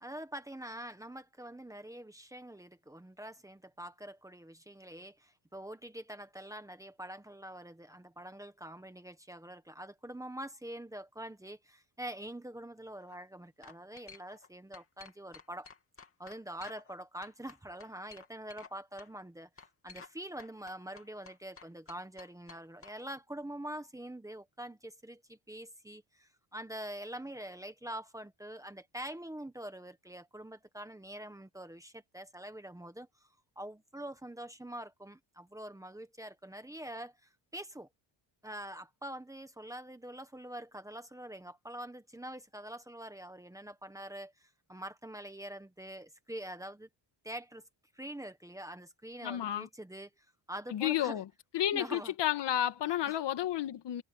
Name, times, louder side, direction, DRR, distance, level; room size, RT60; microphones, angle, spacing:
voice 1, 0.0-15.7 16.2-33.3 33.6-37.9 38.4-46.9 47.2-47.6 47.9-51.2 51.7-52.1 52.8-53.2, right 1 dB, 5° right, 1.4 m, -45 dB
sound 1, 12.9-13.2 13.6-14.5 14.7-16.9 17.2-18.7 19.0-19.1 19.6-20.1 20.4-22.9, left 5 dB, 30° left, 2.9 m, -53 dB
voice 2, 49.2-49.7 50.7-51.2 51.5-54.0, left 11 dB, 60° left, 1.8 m, -31 dB
cardioid pair, 160°, 47 cm